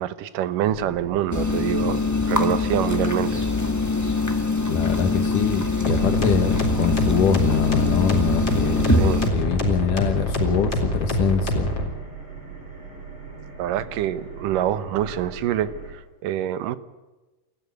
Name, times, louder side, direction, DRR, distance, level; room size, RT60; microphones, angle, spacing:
voice 1, 0.0-2.0 2.3-3.4 9.0-9.3 13.6-16.8, right 11 dB, 85° right, 14 dB, 2.7 m, -26 dB
sound 1, 0.6-15.9, right 4 dB, 40° right, 5.6 m, -41 dB
sound 2, 1.3-9.3, left 3 dB, 15° left, 0.6 m, -23 dB
voice 2, 4.3-11.7, left 7 dB, 80° left, 9 dB, 3.2 m, -24 dB
sound 3, 5.8-11.8, equal, 35° left, 4.5 m, -25 dB
28.0 x 14.0 x 9.3 m, 1.2 s
omnidirectional pair, 3.7 m